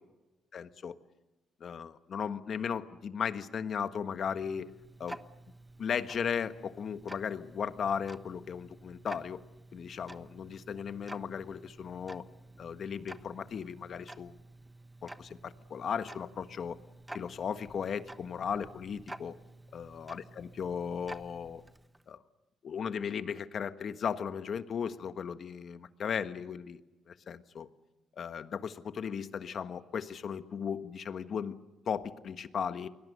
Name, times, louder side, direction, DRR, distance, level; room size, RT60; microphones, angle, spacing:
voice 1, 0.5-1.0 1.6-4.7 5.0-5.2 5.8-9.4 9.7-12.2 12.6-14.3 15.0-16.8 17.1-19.4 19.7-21.6 22.1-22.2 22.6-26.8 27.1-27.7 28.2-31.6 31.8-32.9, left 7 dB, 55° left, 10 dB, 1.4 m, -36 dB
Tick-tock, 3.8-22.1, right 1 dB, 10° right, 1.2 m, -51 dB
29.5 x 22.0 x 6.8 m, 1.1 s
cardioid pair, 90°, 0 cm